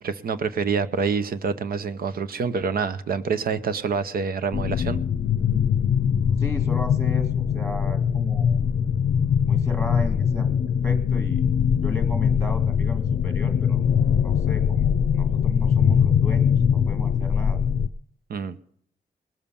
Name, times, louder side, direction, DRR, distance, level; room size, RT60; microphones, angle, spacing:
voice 1, 0.0-5.0 18.3-18.6, right 5 dB, 75° right, 12 dB, 0.8 m, -26 dB
sound 1, 4.5-17.9, left 7 dB, 80° left, 0.5 m, -22 dB
voice 2, 6.4-8.6 9.4-10.5 10.8-11.4 11.8-13.8 14.2-17.6, left 1 dB, 5° right, 5 dB, 1.8 m, -35 dB
20.0 x 7.3 x 7.0 m, 0.65 s
cardioid pair, 85°, 15 cm